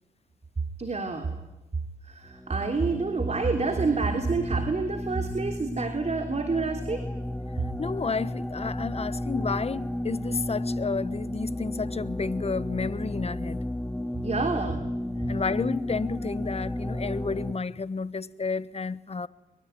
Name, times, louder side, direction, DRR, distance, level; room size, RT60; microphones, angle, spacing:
voice 1, 0.8-1.3 2.0-7.0 14.2-14.8, right 4 dB, 35° right, 3.4 m, -28 dB
sound 1, 2.3-17.5, left 1 dB, 5° left, 1.9 m, -33 dB
voice 2, 7.8-13.6 15.3-19.3, left 4 dB, 35° left, 1.2 m, -31 dB
23.0 x 23.0 x 9.4 m
supercardioid pair, 55°, 19 cm